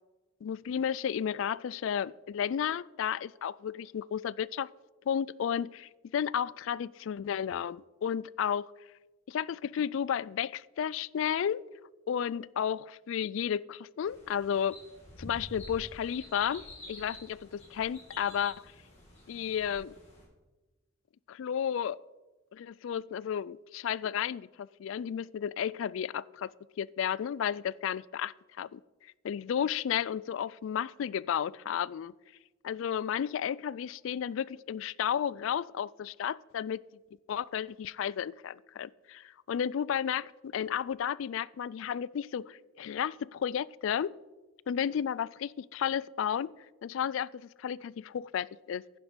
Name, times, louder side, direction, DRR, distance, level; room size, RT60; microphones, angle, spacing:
voice 1, 0.4-4.7 5.1-8.7 9.3-11.6 12.1-14.8 15.2-18.7 19.3-19.9 21.3-22.0 22.5-26.5 26.8-28.8 29.2-32.1 32.6-36.8 37.3-44.1 44.7-46.5 46.8-48.8, left 8 dB, 65° left, 23 dB, 0.3 m, -33 dB
sound 1, 14.1-20.2, left 1 dB, 30° left, 4.9 m, -49 dB
11.0 x 10.0 x 5.2 m, 1.2 s
head